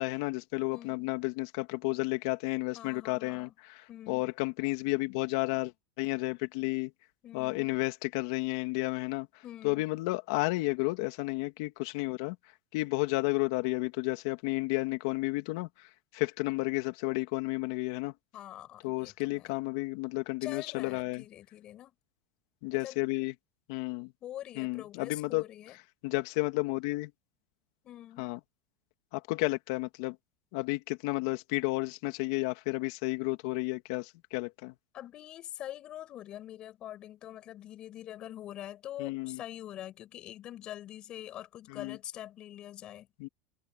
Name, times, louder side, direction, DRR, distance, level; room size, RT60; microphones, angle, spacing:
voice 1, 0.0-5.7 6.0-6.9 7.3-12.4 12.7-15.9 16.1-18.1 18.8-21.2 22.6-23.3 23.7-24.1 24.6-25.4 26.0-27.1 28.2-28.4 29.1-30.2 30.5-34.7 39.0-39.4 41.7-42.0 43.2-43.3, left 23 dB, 70° left, 2.1 m, -32 dB
voice 2, 0.7-1.1 2.7-3.5 3.9-4.3 7.2-7.7 9.4-9.8 18.3-19.6 20.4-21.9 22.7-23.0 24.2-25.8 27.8-28.3 34.9-43.1, left 12 dB, 40° left, 5.6 m, -44 dB
supercardioid pair, 125°, 2 cm